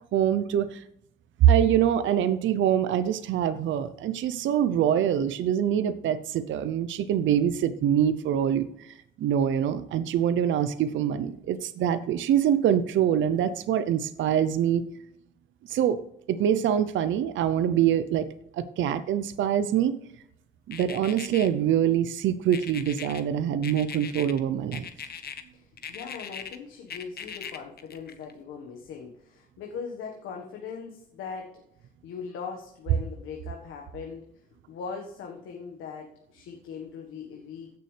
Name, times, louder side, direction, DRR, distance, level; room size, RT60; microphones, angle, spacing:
voice 1, 0.1-0.8 1.4-14.8 15.6-16.0 16.3-18.3 18.5-20.0 20.7-24.9, right 10 dB, 75° right, 12 dB, 0.7 m, -24 dB
sound 1, 20.7-21.5 22.5-23.2 23.6-24.4 24.7-25.4 25.8-26.6 26.9-28.3, left 7 dB, 55° left, 1.2 m, -39 dB
voice 2, 25.5-34.2 34.7-37.7, left 6 dB, 85° left, 1 dB, 1.5 m, -40 dB
15.5 x 6.9 x 3.3 m, 0.72 s
cardioid pair, 90°, 20 cm